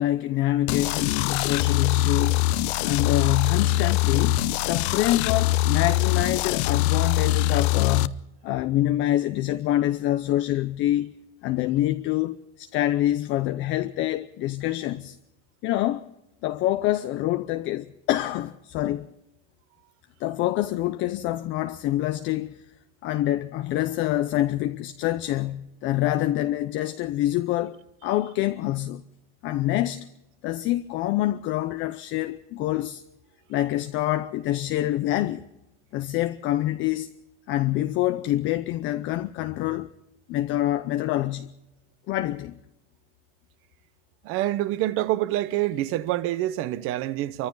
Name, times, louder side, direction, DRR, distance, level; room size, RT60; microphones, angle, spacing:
voice 1, 0.0-2.5 2.8-11.2 11.4-15.2 15.6-16.1 16.4-19.1 20.2-22.7 23.0-29.0 29.4-30.1 30.4-33.0 33.5-35.5 35.9-37.1 37.5-39.9 40.3-41.5 42.1-42.6, left 14 dB, 35° left, 0.7 m, -26 dB
sound 1, 0.7-8.1, left 14 dB, 70° left, 0.8 m, -23 dB
voice 2, 44.2-47.5, right 15 dB, 40° right, 1.0 m, -26 dB
26.5 x 24.0 x 4.0 m
supercardioid pair, 165°, 34 cm